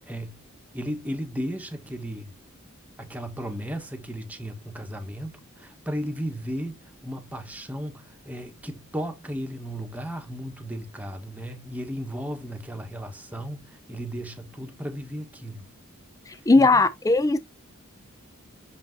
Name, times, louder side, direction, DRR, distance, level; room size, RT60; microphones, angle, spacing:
voice 1, 0.1-0.4 0.7-2.3 3.0-15.6 16.6-16.8, equal, 5° right, 1.3 m, -35 dB
voice 2, 16.3-17.4, left 3 dB, 15° left, 0.5 m, -19 dB
6.8 x 5.6 x 2.7 m
head